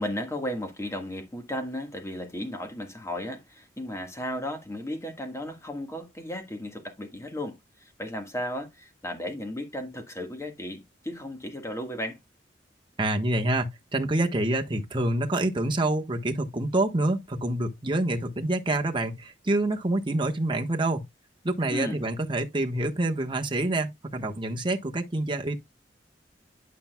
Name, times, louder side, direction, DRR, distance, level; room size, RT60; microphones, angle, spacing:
voice 1, 0.0-12.2 21.7-22.0, left 1 dB, 15° left, 1.5 m, -35 dB
voice 2, 13.0-21.0 21.4-25.6, right 1 dB, 30° right, 1.2 m, -27 dB
11.5 x 5.8 x 2.2 m
head